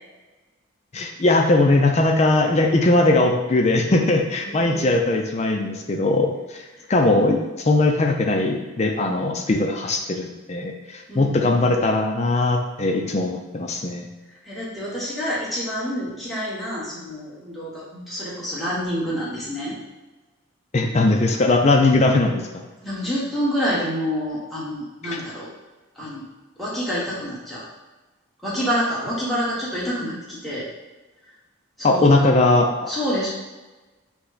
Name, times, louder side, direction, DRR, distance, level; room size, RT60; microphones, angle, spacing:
voice 1, 0.9-6.6 6.9-14.1 20.7-22.4 25.0-25.2 31.8-32.9, left 2 dB, 30° left, 2 dB, 0.4 m, -20 dB
voice 2, 4.4-4.9 9.0-9.3 11.1-11.8 14.4-19.8 22.8-25.5 25.9-26.2 26.6-27.6 28.4-30.7 31.8-32.2 32.9-33.3, equal, ahead, -8 dB, 1.1 m, -28 dB
5.9 x 2.2 x 3.8 m, 1.2 s
head